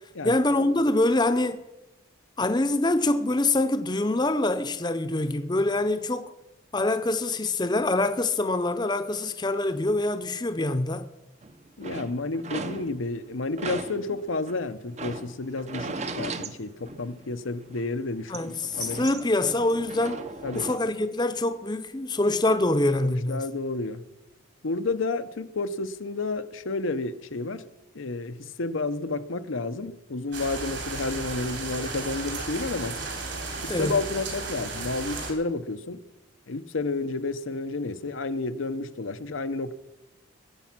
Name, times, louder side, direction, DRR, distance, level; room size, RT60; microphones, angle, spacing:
voice 1, 0.2-1.6 2.4-6.3 6.7-11.0 18.3-20.2 20.5-23.4 33.7-34.0, left 2 dB, 20° left, 0.7 m, -25 dB
sound 1, 11.4-13.2 13.6-17.4 17.7-20.8, right 3 dB, 35° right, 0.7 m, -37 dB
voice 2, 11.8-19.0 20.4-20.7 23.0-24.0 24.6-27.7 27.9-33.0 33.6-36.0 36.5-39.8, left 3 dB, 80° left, 0.8 m, -31 dB
sound 2, 30.3-35.3, right 3 dB, 65° right, 3.5 m, -34 dB
21.0 x 8.3 x 6.0 m
head